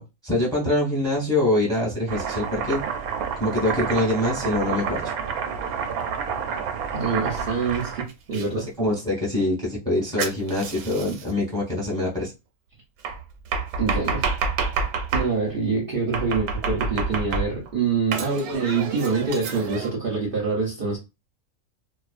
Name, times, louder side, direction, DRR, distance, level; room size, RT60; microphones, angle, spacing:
voice 1, 0.0-2.8 3.4-5.0 8.5-12.3, left 1 dB, 5° left, 0.9 m, -24 dB
Domestic sounds home sounds, 2.1-8.5 10.2-11.3 13.0-15.3 16.1-17.7 18.1-19.9, right 5 dB, 85° right, 1.0 m, -29 dB
voice 2, 6.9-8.7 13.8-14.3 15.1-21.0, right 4 dB, 55° right, 0.7 m, -25 dB
2.3 x 2.3 x 2.4 m
omnidirectional pair, 1.5 m